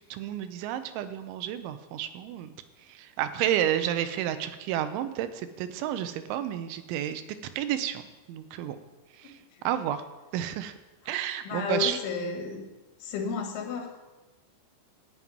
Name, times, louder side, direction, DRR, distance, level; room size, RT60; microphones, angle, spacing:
voice 1, 0.1-2.5 2.9-7.2 7.6-8.0 8.3-8.8 9.2-9.3 9.6-10.0 10.3-10.7 11.1-12.0, right 11 dB, 90° right, 10 dB, 3.2 m, -30 dB
voice 2, 11.5-12.7 13.0-14.0, left 5 dB, 85° left, 3 dB, 4.0 m, -32 dB
13.5 x 7.6 x 9.3 m, 1.2 s
omnidirectional pair, 5.3 m